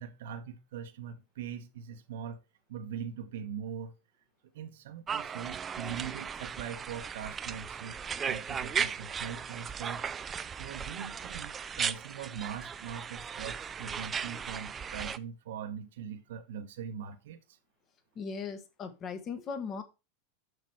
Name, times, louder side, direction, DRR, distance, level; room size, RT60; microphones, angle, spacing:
voice 1, 0.0-2.4 2.7-3.9 4.5-10.0 10.6-17.6, right 7 dB, 80° right, 1.1 m, -41 dB
sound 1, 5.1-15.2, right 7 dB, 20° right, 0.4 m, -37 dB
voice 2, 18.1-19.8, left 5 dB, 30° left, 1.5 m, -38 dB
6.4 x 5.9 x 4.7 m
supercardioid pair, 135°, 0 cm